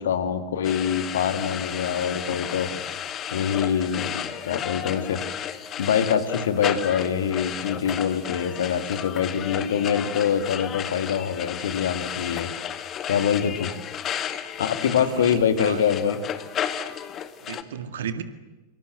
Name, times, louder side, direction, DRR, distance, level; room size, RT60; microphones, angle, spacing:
voice 1, 0.0-2.7 3.3-5.2 5.8-12.5 13.1-13.7 14.6-16.2, left 8 dB, 60° left, 10 dB, 2.7 m, -24 dB
sound 1, 0.6-17.6, left 9 dB, 30° left, 2.0 m, -33 dB
voice 2, 15.0-15.8 17.4-18.2, right 8 dB, 60° right, 12 dB, 2.0 m, -34 dB
26.5 x 26.0 x 7.9 m, 1.2 s
figure-of-eight pair, 90°, 0 cm